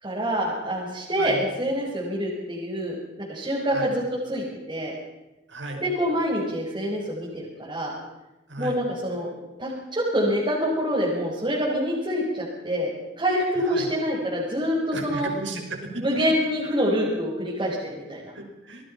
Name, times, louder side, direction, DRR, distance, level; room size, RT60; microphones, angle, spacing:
voice 1, 0.0-3.0 3.3-4.9 5.8-8.0 8.6-12.9 13.2-15.3 16.0-18.3, equal, 25° right, -6 dB, 6.0 m, -26 dB
voice 2, 5.5-5.8 8.5-8.8 13.7-13.9 14.9-16.0 18.3-18.9, right 2 dB, 80° right, 3 dB, 6.2 m, -34 dB
27.0 x 22.0 x 5.8 m, 1.0 s
head